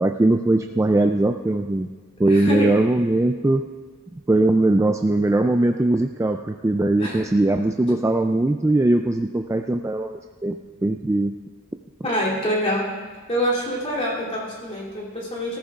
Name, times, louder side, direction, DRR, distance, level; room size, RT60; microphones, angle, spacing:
voice 1, 0.0-1.9 2.2-3.7 4.1-11.3, right 2 dB, 15° right, 5 dB, 0.3 m, -20 dB
voice 2, 2.3-2.8 7.0-7.2 7.9-8.0 12.0-12.9 13.3-15.6, equal, 30° left, -5 dB, 3.0 m, -25 dB
19.0 x 14.0 x 2.4 m, 1.5 s
head